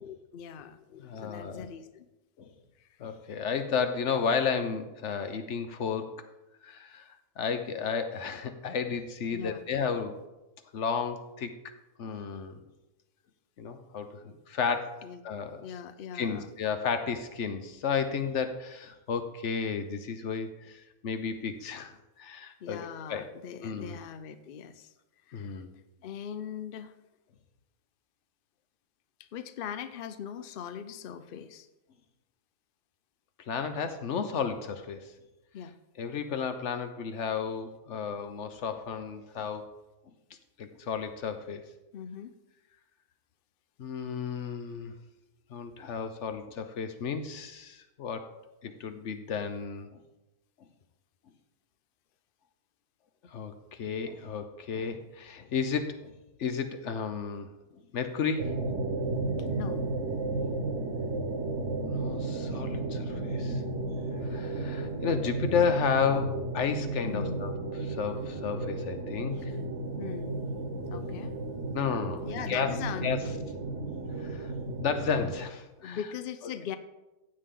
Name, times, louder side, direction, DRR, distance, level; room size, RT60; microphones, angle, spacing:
voice 1, 0.0-2.1 2.8-2.9 9.3-9.6 15.0-15.2 15.6-16.5 22.6-24.9 25.3-25.6 26.0-27.0 29.2-31.7 35.5-35.8 41.9-42.3 59.5-59.8 67.0-67.4 69.1-69.4 70.0-70.4 70.9-71.4 72.2-73.3 75.8-76.8, left 8 dB, 75° left, 11 dB, 0.5 m, -40 dB
voice 2, 1.0-1.7 2.4-2.5 3.0-6.2 6.6-7.1 7.4-10.2 10.7-11.5 12.0-12.6 13.6-15.7 16.1-23.3 23.6-24.0 25.3-25.7 33.5-35.1 36.0-39.7 40.6-41.6 43.8-44.9 45.5-48.2 48.6-49.9 53.3-56.1 56.4-57.5 57.9-58.5 61.9-63.6 64.2-67.5 67.8-69.4 71.7-72.7 73.0-73.2 74.2-74.5 74.8-76.0, left 6 dB, 55° left, 9 dB, 1.1 m, -32 dB
sound 1, 58.4-75.4, right 2 dB, 50° right, 1.4 m, -33 dB
15.0 x 8.5 x 3.8 m, 1.0 s
omnidirectional pair, 1.7 m